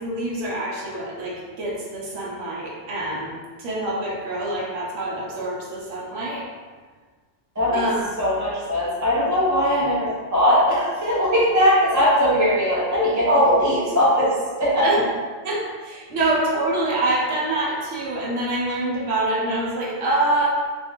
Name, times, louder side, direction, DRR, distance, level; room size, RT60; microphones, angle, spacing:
voice 1, 0.0-6.5 7.7-8.0 14.8-15.0 15.4-20.5, right 2 dB, 80° right, -5 dB, 1.2 m, -25 dB
voice 2, 7.5-7.9 8.2-14.3 14.6-14.9, equal, 15° right, -8 dB, 0.7 m, -19 dB
3.4 x 2.6 x 3.5 m, 1.5 s
omnidirectional pair, 1.2 m